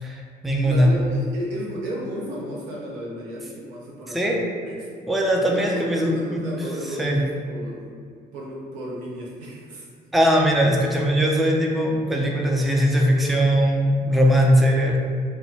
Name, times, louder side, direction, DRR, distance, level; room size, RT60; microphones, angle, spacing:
voice 1, 0.0-0.9 4.1-4.4 5.1-6.1 7.0-7.2 10.1-15.0, equal, ahead, -1 dB, 0.4 m, -20 dB
voice 2, 0.6-4.9 5.5-7.9 8.3-9.9, equal, 75° right, -4 dB, 0.7 m, -33 dB
3.0 x 2.2 x 3.2 m, 2.1 s
hypercardioid pair, 50°, 21 cm